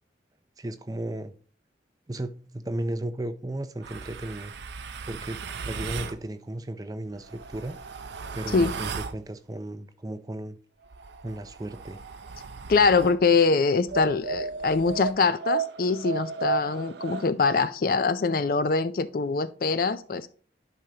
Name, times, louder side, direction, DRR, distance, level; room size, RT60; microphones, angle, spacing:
voice 1, 0.6-1.3 2.1-4.5 5.1-7.8 8.3-10.6 11.2-12.0, right 1 dB, 20° right, 0.4 m, -35 dB
sound 1, 3.8-6.2 7.2-9.2 10.8-13.2 13.9-17.3, right 5 dB, 70° right, 0.5 m, -35 dB
voice 2, 12.7-20.4, left 4 dB, 50° left, 0.4 m, -23 dB
11.0 x 5.1 x 2.8 m
head